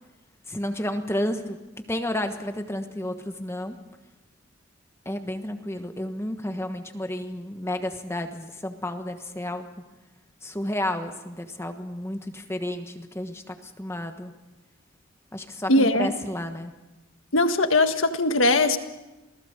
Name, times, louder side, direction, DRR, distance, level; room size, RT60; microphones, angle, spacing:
voice 1, 0.5-1.6 1.9-3.8 5.0-9.7 10.4-14.3 15.3-16.7, left 1 dB, 15° left, 6 dB, 1.3 m, -31 dB
voice 2, 15.7-16.1 17.3-18.8, left 2 dB, 75° left, 8 dB, 1.7 m, -20 dB
28.0 x 19.0 x 6.7 m, 1.1 s
head